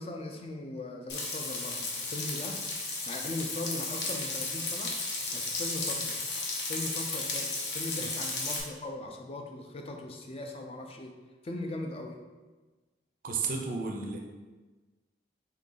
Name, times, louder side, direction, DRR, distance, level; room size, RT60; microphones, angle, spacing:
voice 1, 0.0-2.6 3.1-5.0 5.3-6.2 6.7-11.2 11.4-12.2, left 2 dB, 35° left, 4 dB, 0.4 m, -39 dB
Frying (food), 1.1-8.6, left 3 dB, 80° left, 0.7 m, -34 dB
voice 2, 13.2-14.2, right 4 dB, 50° right, 2 dB, 0.4 m, -33 dB
3.9 x 2.6 x 3.7 m, 1.3 s
head